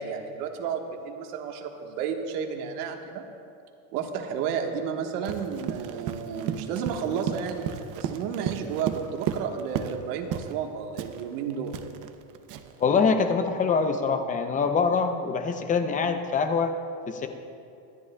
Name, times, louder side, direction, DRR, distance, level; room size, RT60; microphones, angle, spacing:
voice 1, 0.0-3.3 3.9-7.6 7.9-11.7, right 7 dB, 85° right, 3 dB, 1.4 m, -32 dB
Run, 5.2-10.0 10.3-10.6 11.0-12.8, right 9 dB, 45° right, 0.7 m, -34 dB
voice 2, 12.8-16.7 17.1-17.3, left 5 dB, 20° left, 7 dB, 0.5 m, -24 dB
24.5 x 11.0 x 2.2 m, 2.5 s
cardioid pair, 155°, 44 cm